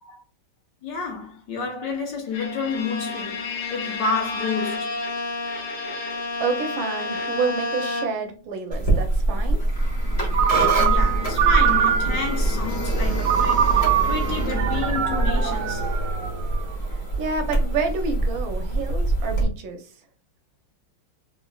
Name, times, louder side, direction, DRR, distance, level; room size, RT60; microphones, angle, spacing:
voice 1, 0.8-4.9 10.8-15.9, left 4 dB, 65° left, 1.3 m, -30 dB
Bowed string instrument, 2.3-8.4, left 3 dB, 85° left, 1.6 m, -30 dB
voice 2, 5.8-9.6 17.2-19.9, right 4 dB, 75° right, 1.3 m, -29 dB
sound 1, 8.7-19.4, right 2 dB, 35° left, 1.2 m, -24 dB
Ringtone, 10.3-12.4 13.2-16.6, right 9 dB, 90° right, 1.5 m, -23 dB
3.6 x 3.1 x 2.3 m
omnidirectional pair, 2.3 m